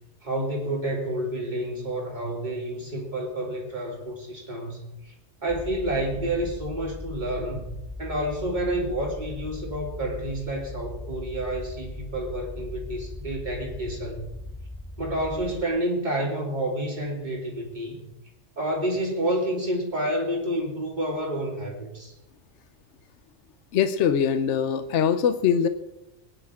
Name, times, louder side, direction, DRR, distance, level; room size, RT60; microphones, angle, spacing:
voice 1, 0.2-5.1 5.4-7.7 8.0-14.3 15.0-18.0 18.6-22.1, right 1 dB, 40° right, -2 dB, 3.2 m, -29 dB
sound 1, 5.5-15.6, left 1 dB, 5° left, 1.3 m, -39 dB
voice 2, 23.7-25.7, left 8 dB, 75° left, 10 dB, 1.0 m, -22 dB
22.5 x 10.0 x 3.6 m, 0.92 s
omnidirectional pair, 1.2 m